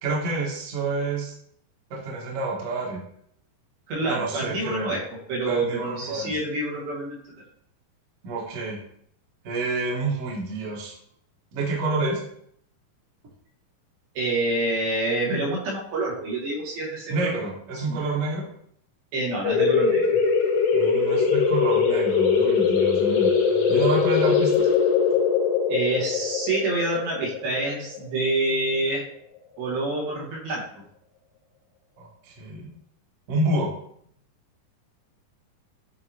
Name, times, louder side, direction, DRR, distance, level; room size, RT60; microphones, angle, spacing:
voice 1, 0.0-1.3 1.9-3.0 4.0-4.9 5.5-6.4 8.2-8.8 9.4-10.9 11.5-12.2 17.1-18.4 20.7-23.3 23.7-24.7 32.0-32.7 33.3-33.7, right 2 dB, 55° right, -3 dB, 1.8 m, -28 dB
voice 2, 3.9-5.0 5.3-7.2 14.1-17.3 17.7-18.0 19.1-20.2 25.7-29.1 29.6-30.6, right 2 dB, 80° right, -4 dB, 3.4 m, -27 dB
sound 1, 19.4-28.8, left 6 dB, 75° left, 2.4 m, -22 dB
8.2 x 4.1 x 2.8 m, 0.67 s
omnidirectional pair, 4.2 m